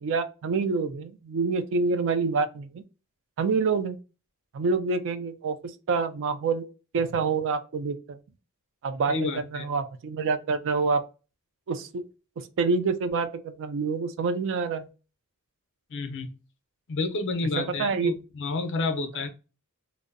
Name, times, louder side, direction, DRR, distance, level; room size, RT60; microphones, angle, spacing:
voice 1, 0.0-2.8 3.4-4.0 4.5-6.6 6.9-8.2 8.8-11.0 11.7-12.0 12.4-14.9 17.8-18.2, right 4 dB, 55° right, 0.3 m, -27 dB
voice 2, 9.1-9.7 15.9-16.3 16.9-19.3, left 3 dB, 55° left, 0.5 m, -30 dB
2.5 x 2.0 x 2.4 m
head